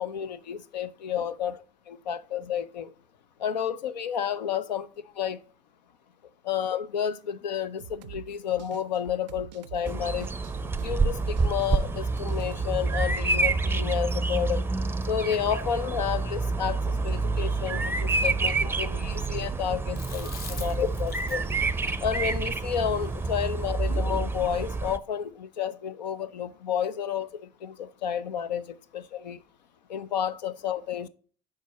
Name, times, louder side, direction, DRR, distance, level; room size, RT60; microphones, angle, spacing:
voice 1, 0.0-1.6 1.9-2.9 3.4-4.9 5.2-5.4 6.4-10.3 10.8-14.6 15.1-17.9 18.2-21.4 22.0-29.4 29.9-31.1, left 8 dB, 90° left, 0.5 m, -31 dB
sound 1, 7.8-12.7, right 12 dB, 90° right, 0.4 m, -45 dB
Bird vocalization bird call bird song, 9.8-25.0, right 3 dB, 10° right, 0.5 m, -28 dB
Chewing mastication, 20.0-24.4, left 4 dB, 45° left, 1.4 m, -44 dB
7.2 x 4.8 x 4.1 m
hypercardioid pair, 75°, 21 cm